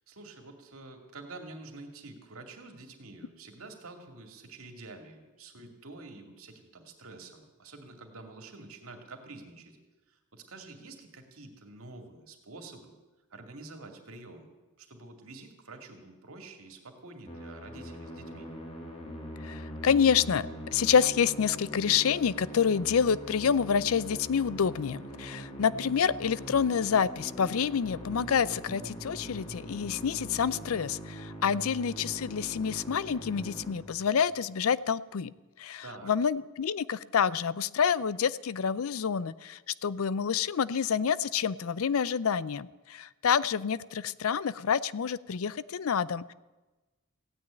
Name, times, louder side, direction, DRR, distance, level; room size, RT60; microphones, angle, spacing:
voice 1, 0.1-9.8 10.3-12.9 13.3-14.5 14.8-18.5 35.8-36.1, right 3 dB, 70° right, 4 dB, 2.3 m, -48 dB
Musical instrument, 17.3-34.4, equal, 25° left, 2.4 m, -42 dB
voice 2, 19.4-20.5 20.7-35.3 35.6-46.3, left 7 dB, 70° left, 19 dB, 0.5 m, -28 dB
16.0 x 9.5 x 9.0 m, 1.2 s
head